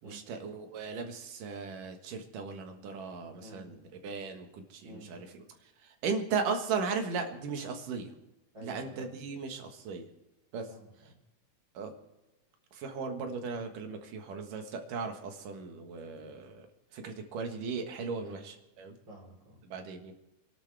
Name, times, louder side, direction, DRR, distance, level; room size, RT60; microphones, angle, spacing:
voice 1, 0.0-3.8 4.0-5.4 5.8-8.1 8.6-10.1 10.5-10.7 11.7-11.9 12.7-16.7 16.9-19.0 19.7-20.1, right 5 dB, 90° right, 5 dB, 3.2 m, -37 dB
voice 2, 3.4-3.7 4.8-5.1 8.5-9.1 10.7-11.1 18.2-18.4 19.1-19.6, right 1 dB, 35° right, -4 dB, 4.3 m, -50 dB
27.0 x 11.5 x 3.4 m, 0.95 s
omnidirectional pair, 3.7 m